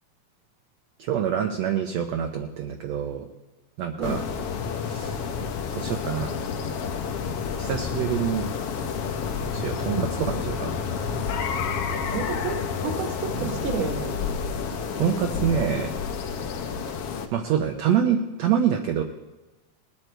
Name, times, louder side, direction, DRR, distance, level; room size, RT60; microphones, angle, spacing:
voice 1, 1.0-3.3 3.8-4.2 4.8-5.4 5.7-6.4 7.6-8.5 9.4-10.8 13.3-13.7 15.0-15.9 17.3-19.0, right 8 dB, 70° right, 3 dB, 1.9 m, -26 dB
sound 1, 4.0-17.3, left 6 dB, 65° left, 1.6 m, -30 dB
voice 2, 12.1-14.1, right 5 dB, 50° right, 3 dB, 2.1 m, -30 dB
20.5 x 9.7 x 4.6 m, 1.1 s
omnidirectional pair, 3.6 m